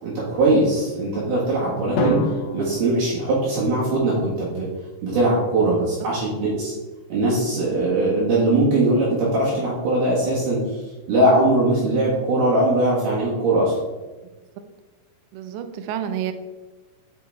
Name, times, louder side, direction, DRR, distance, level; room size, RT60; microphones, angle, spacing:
voice 1, 0.0-4.7 5.0-6.7 7.1-10.8 11.1-13.8, right 2 dB, 60° right, -7 dB, 3.1 m, -21 dB
Drum, 2.0-4.1, equal, 75° left, 3.4 m, -27 dB
voice 2, 15.3-16.3, right 9 dB, 80° right, 9 dB, 2.6 m, -30 dB
8.5 x 6.0 x 3.4 m, 1.2 s
omnidirectional pair, 5.6 m